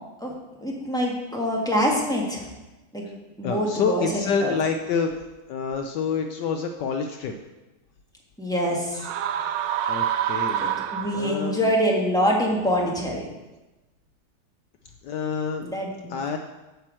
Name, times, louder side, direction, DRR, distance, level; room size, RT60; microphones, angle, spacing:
voice 1, 0.6-2.5 2.9-3.0 3.4-4.6 8.4-9.0 10.6-13.2 15.6-16.1, equal, ahead, -3 dB, 1.1 m, -25 dB
voice 2, 3.4-5.1 5.5-7.3 9.9-10.6 11.1-11.7 15.0-15.7 16.1-16.4, left 6 dB, 75° left, 5 dB, 1.0 m, -27 dB
sound 1, 9.0-11.6, right 10 dB, 75° right, 1.0 m, -27 dB
8.7 x 4.5 x 7.4 m, 1.1 s
omnidirectional pair, 2.4 m